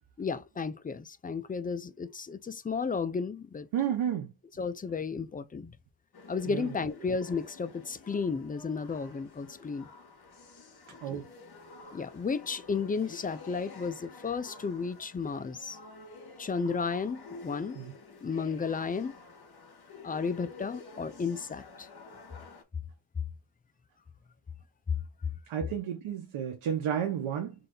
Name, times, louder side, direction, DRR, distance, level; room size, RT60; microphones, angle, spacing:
voice 1, 0.2-3.7 4.6-5.8 6.3-9.9 11.1-11.2 11.9-15.8 16.4-17.8 18.2-19.2 20.0-22.2, left 5 dB, 20° left, 0.4 m, -33 dB
voice 2, 3.7-4.3 6.5-6.7 11.0-11.2 17.7-17.9 25.5-27.5, right 9 dB, 85° right, 1.0 m, -32 dB
sound 1, 6.1-22.6, left 3 dB, 55° left, 1.7 m, -50 dB
3.8 x 3.3 x 3.8 m
cardioid pair, 100°, 47 cm